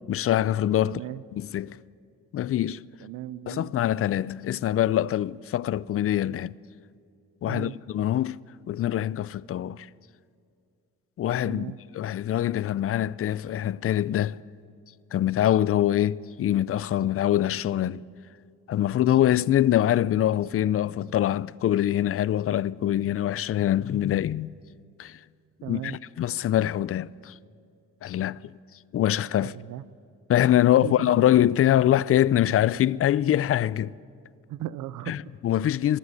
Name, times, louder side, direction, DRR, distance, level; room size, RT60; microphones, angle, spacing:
voice 1, 0.1-1.0 1.3-1.8 2.3-2.8 3.5-6.5 7.4-8.4 8.7-9.9 11.2-11.7 11.9-14.4 15.1-18.0 18.7-24.5 25.0-25.2 25.6-27.3 28.0-28.4 28.9-29.5 30.3-33.9 35.1-36.0, left 12 dB, 50° left, 0.5 m, -24 dB
voice 2, 0.8-1.2 3.0-3.7 7.4-7.8 11.4-11.8 25.6-26.0 29.4-29.8 30.8-31.1 34.5-35.2, right 13 dB, 90° right, 0.7 m, -36 dB
20.5 x 13.0 x 9.7 m
cardioid pair, 90°, 30 cm